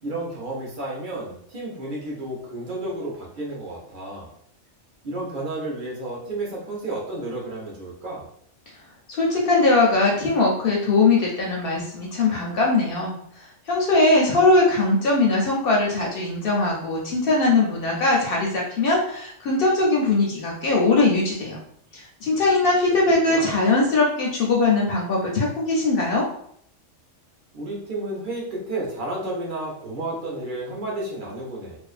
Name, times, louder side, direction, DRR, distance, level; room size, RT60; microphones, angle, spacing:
voice 1, 0.0-4.3 5.0-8.2 23.3-23.5 27.5-31.8, right 2 dB, 50° right, -3 dB, 0.7 m, -31 dB
voice 2, 9.2-13.1 13.7-21.6 21.9-26.3, left 3 dB, 60° left, -3 dB, 0.6 m, -20 dB
2.5 x 2.3 x 2.4 m, 0.67 s
omnidirectional pair, 1.3 m